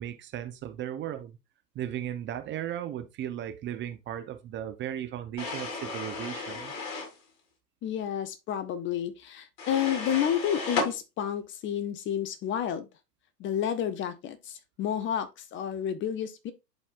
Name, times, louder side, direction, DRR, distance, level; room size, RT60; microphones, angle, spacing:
voice 1, 0.0-1.4 1.7-6.7, right 11 dB, 25° right, 0.7 m, -36 dB
sound 1, 5.4-7.2 9.6-10.9, left 4 dB, 45° left, 3.7 m, -33 dB
voice 2, 7.8-12.9 13.4-16.5, left 9 dB, 25° left, 0.7 m, -30 dB
11.0 x 4.2 x 2.4 m
hypercardioid pair, 105°, 50 cm